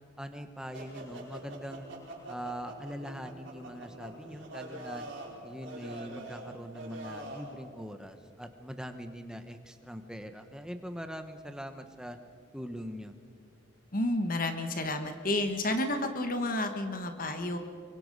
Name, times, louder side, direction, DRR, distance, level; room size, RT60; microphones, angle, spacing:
voice 1, 0.2-1.9 2.3-5.1 5.4-12.2 12.5-13.1, equal, 5° right, 7 dB, 1.0 m, -42 dB
sound 1, 0.7-7.5, right 1 dB, 60° right, 5.5 m, -45 dB
voice 2, 13.9-17.6, left 1 dB, 40° left, 6 dB, 1.4 m, -31 dB
24.5 x 23.5 x 5.4 m, 2.4 s
head